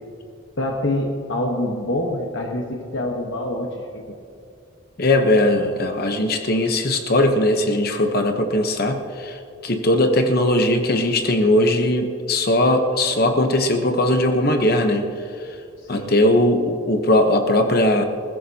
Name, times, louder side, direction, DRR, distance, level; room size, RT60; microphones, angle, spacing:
voice 1, 0.6-4.1 15.8-16.1, left 1 dB, 65° left, 1 dB, 1.2 m, -26 dB
voice 2, 5.0-15.1 15.9-18.0, left 1 dB, 45° left, 5 dB, 0.9 m, -19 dB
20.5 x 15.5 x 2.8 m, 2.4 s
head